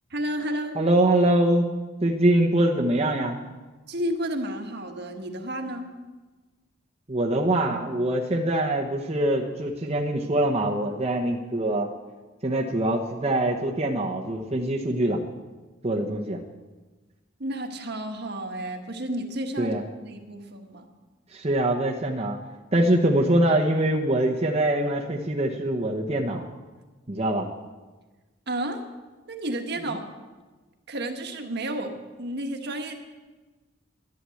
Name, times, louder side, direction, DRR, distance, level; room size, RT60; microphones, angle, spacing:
voice 1, 0.1-0.8 3.9-5.8 17.4-20.9 28.5-28.8 29.3-30.0 30.9-31.9 32.2-33.0, right 1 dB, 60° right, 4 dB, 1.5 m, -31 dB
voice 2, 0.7-1.6 2.0-3.4 7.1-11.9 12.4-15.2 15.8-16.4 19.6-19.8 21.3-22.4 22.7-26.5 27.1-27.5, right 1 dB, 35° right, -1 dB, 1.0 m, -23 dB
12.0 x 11.5 x 7.8 m, 1.3 s
head